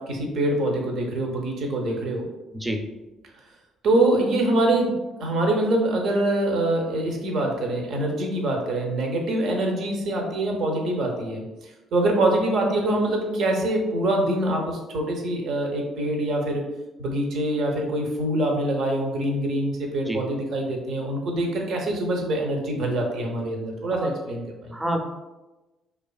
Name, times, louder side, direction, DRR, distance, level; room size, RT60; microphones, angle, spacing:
voice 1, 0.0-2.3 3.8-4.9 5.2-11.4 11.9-16.6 17.0-24.8, right 1 dB, 65° right, 1 dB, 0.5 m, -24 dB
voice 2, 24.7-25.1, right 1 dB, 10° right, 3 dB, 0.4 m, -27 dB
2.4 x 2.3 x 2.3 m, 1.1 s
hypercardioid pair, 60°, 0 cm